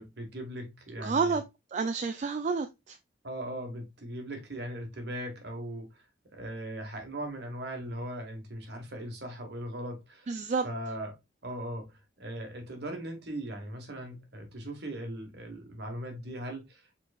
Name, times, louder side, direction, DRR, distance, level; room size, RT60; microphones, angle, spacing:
voice 1, 0.0-1.4 3.2-6.0 6.3-10.3 10.6-11.1 11.4-16.9, right 1 dB, 65° right, 1.3 m, -39 dB
voice 2, 1.0-1.4 1.7-3.0 10.3-10.7, right 4 dB, 40° right, 0.3 m, -29 dB
4.5 x 3.9 x 2.4 m
head